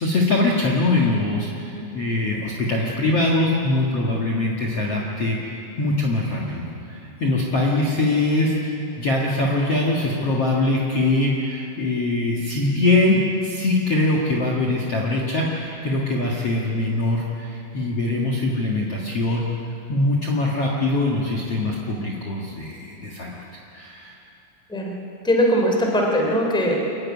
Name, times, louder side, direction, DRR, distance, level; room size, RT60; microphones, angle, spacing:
voice 1, 0.0-5.4 5.8-19.5 19.9-23.4 23.7-24.1, left 2 dB, 75° left, -3 dB, 1.3 m, -22 dB
voice 2, 25.2-26.9, equal, ahead, 0 dB, 1.8 m, -20 dB
24.0 x 14.5 x 9.6 m, 2.8 s
omnidirectional pair, 5.8 m